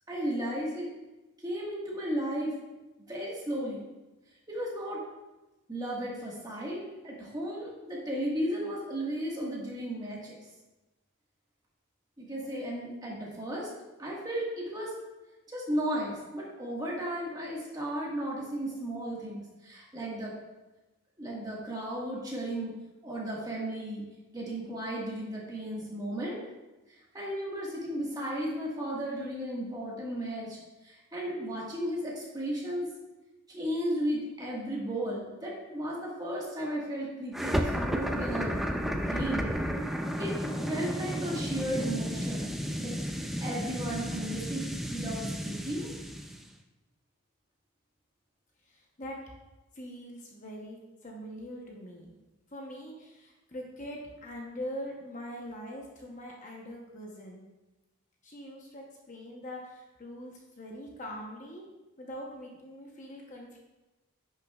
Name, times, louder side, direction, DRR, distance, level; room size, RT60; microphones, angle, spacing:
voice 1, 0.1-0.9 1.4-2.6 3.1-3.8 4.5-5.1 5.7-10.5 12.2-13.7 14.0-14.9 15.5-20.3 21.2-22.7 23.0-24.0 24.3-26.4 26.9-32.9 33.5-38.6 39.0-39.5 40.2-40.4 40.7-45.9, right 1 dB, 15° right, -4 dB, 1.6 m, -35 dB
sound 1, 37.3-46.5, equal, ahead, 0.3 m, -33 dB
voice 2, 48.6-49.2 49.7-52.1 52.5-57.4 58.2-61.6 62.0-63.6, equal, 35° left, -1 dB, 0.9 m, -43 dB
10.0 x 6.5 x 2.4 m, 1.1 s
head